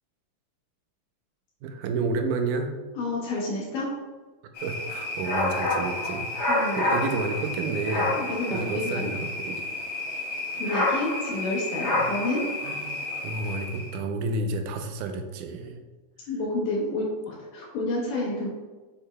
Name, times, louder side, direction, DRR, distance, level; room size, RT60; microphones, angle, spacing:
voice 1, 1.6-2.7 4.6-8.2 8.5-9.6 11.9-12.1 12.6-15.8, right 3 dB, 80° right, 5 dB, 2.1 m, -31 dB
voice 2, 3.0-3.9 6.5-6.9 8.2-9.1 10.6-12.4 16.3-18.5, left 2 dB, 80° left, -4 dB, 2.6 m, -29 dB
sound 1, 4.5-14.0, left 2 dB, 55° left, 1.1 m, -29 dB
7.4 x 6.6 x 2.2 m, 1.3 s
omnidirectional pair, 3.7 m